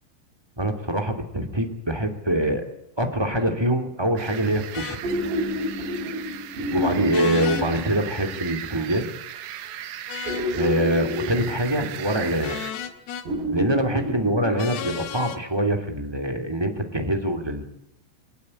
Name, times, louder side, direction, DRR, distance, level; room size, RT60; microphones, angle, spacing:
voice 1, 0.6-2.6 3.0-5.0 6.7-9.1 10.5-12.6 13.5-17.7, right 1 dB, 10° right, 5 dB, 1.8 m, -24 dB
sound 1, 3.2-3.9 5.0-8.6 10.3-12.5 13.3-15.3 16.9-17.0, left 1 dB, 90° right, 6.1 m, -30 dB
sound 2, 4.2-12.7, right 11 dB, 70° right, 3.0 m, -37 dB
sound 3, 4.7-5.0 7.1-7.7 10.1-10.5 12.4-13.3 14.6-15.4, left 9 dB, 70° left, 3.5 m, -33 dB
22.5 x 19.0 x 9.8 m, 0.77 s
omnidirectional pair, 4.8 m